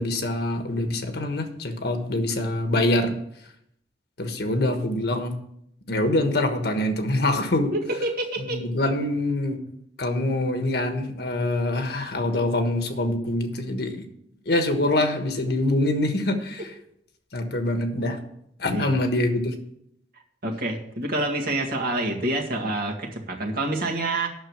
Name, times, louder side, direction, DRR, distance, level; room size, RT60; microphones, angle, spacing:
voice 1, 0.0-3.1 4.2-5.3 5.9-7.7 8.5-9.6 10.0-14.0 14.5-16.7 17.3-18.2 18.6-19.5, left 1 dB, 65° left, 6 dB, 1.4 m, -24 dB
voice 2, 7.7-8.6 18.7-18.9 20.4-24.3, right 2 dB, 60° right, 0 dB, 2.0 m, -27 dB
9.2 x 6.5 x 7.2 m, 0.74 s
head